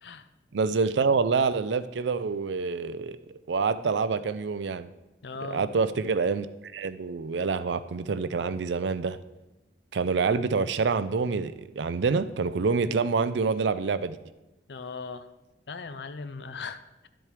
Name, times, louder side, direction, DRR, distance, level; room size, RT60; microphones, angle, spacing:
voice 1, 0.5-3.2 3.5-4.9 5.4-6.5 6.7-9.2 9.9-14.2, right 4 dB, 85° right, 13 dB, 0.4 m, -26 dB
voice 2, 5.2-5.7 14.7-15.3 15.7-17.1, left 4 dB, 75° left, 11 dB, 0.6 m, -38 dB
12.0 x 7.7 x 3.3 m, 1.0 s
head